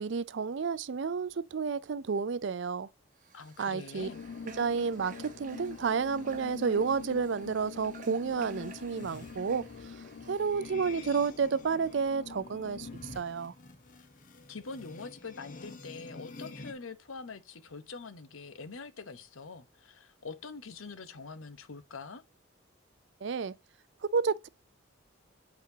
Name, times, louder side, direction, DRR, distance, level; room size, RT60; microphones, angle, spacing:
voice 1, 0.0-2.9 3.6-4.1 4.4-9.7 10.3-13.5 23.2-23.6 24.1-24.5, right 5 dB, 60° right, 0.4 m, -31 dB
Water / Water tap faucet, 3.1-10.7, right 5 dB, 40° right, 0.9 m, -54 dB
voice 2, 3.3-4.2 14.5-22.2, left 4 dB, 85° left, 1.0 m, -44 dB
sound 1, 4.0-13.0, left 6 dB, 65° left, 0.3 m, -46 dB
sound 2, 8.3-16.7, left 3 dB, 40° left, 1.0 m, -50 dB
8.3 x 4.2 x 2.7 m
head